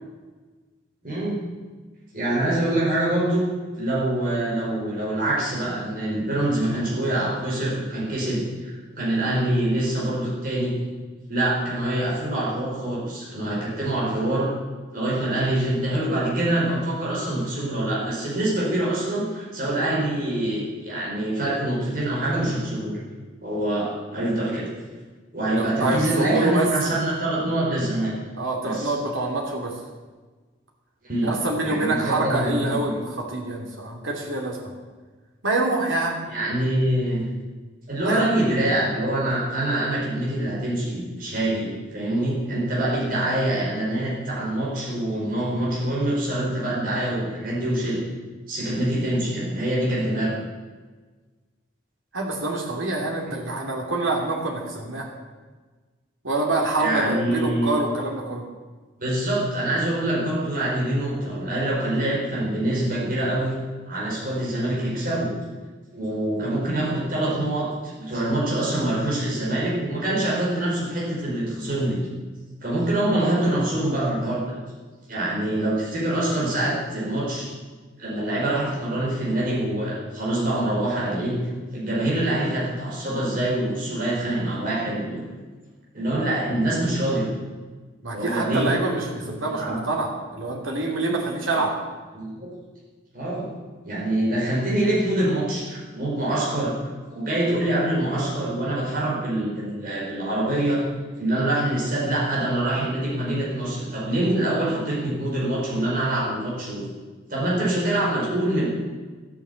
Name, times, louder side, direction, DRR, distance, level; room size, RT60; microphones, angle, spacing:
voice 1, 1.0-1.4 2.1-3.4 3.8-10.7 11.3-14.5 14.9-23.0 23.4-24.7 25.3-28.1 28.6-28.9 31.0-31.3 31.6-32.9 36.3-37.2 37.9-48.0 48.5-50.3 56.8-57.7 59.0-63.6 63.9-65.3 65.9-72.0 72.6-74.5 75.1-77.5 78.0-81.4 81.7-85.2 85.9-87.3 88.1-88.7 89.2-89.8 91.5-91.6 92.1-92.5 93.1-93.5 93.8-96.7 97.1-100.8 101.2-106.8 107.3-108.7, right 1 dB, 45° right, -6 dB, 5.0 m, -25 dB
voice 2, 25.6-26.7 28.4-29.7 31.2-34.6 35.4-36.2 38.0-38.3 52.1-55.1 56.2-58.4 88.0-91.7, right 2 dB, 90° right, 0 dB, 2.9 m, -26 dB
13.0 x 9.1 x 8.3 m, 1.4 s
head